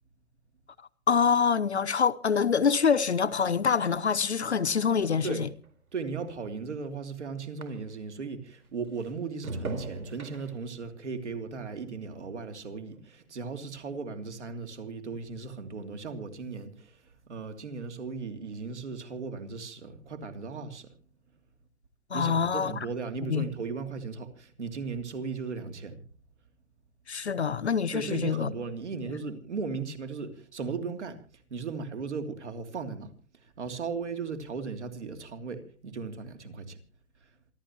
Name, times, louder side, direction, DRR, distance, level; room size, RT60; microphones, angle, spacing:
voice 1, 1.1-5.5 22.1-22.7 23.3-23.5 27.1-28.5, left 6 dB, 50° left, 0.8 m, -25 dB
sound 1, 1.5-8.2 8.6-13.1 13.5-13.9, right 3 dB, 70° right, 4.4 m, -45 dB
voice 2, 5.9-17.0 17.3-20.9 22.1-26.0 27.9-33.1 33.4-36.8, right 5 dB, 50° right, 2.9 m, -37 dB
27.5 x 12.5 x 3.0 m
hypercardioid pair, 175°, 44 cm